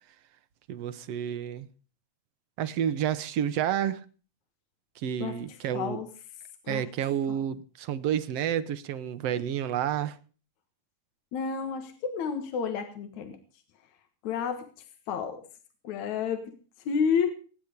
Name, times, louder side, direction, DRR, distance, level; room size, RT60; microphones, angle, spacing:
voice 1, 0.7-1.7 2.6-4.0 5.0-6.0 6.7-10.2, right 10 dB, 65° right, 1.9 m, -30 dB
voice 2, 5.7-6.1 6.6-6.8 11.3-13.4 14.2-14.7 15.1-15.4 15.8-16.4 16.9-17.3, left 6 dB, 75° left, 2.8 m, -30 dB
20.0 x 10.5 x 5.2 m
omnidirectional pair, 3.4 m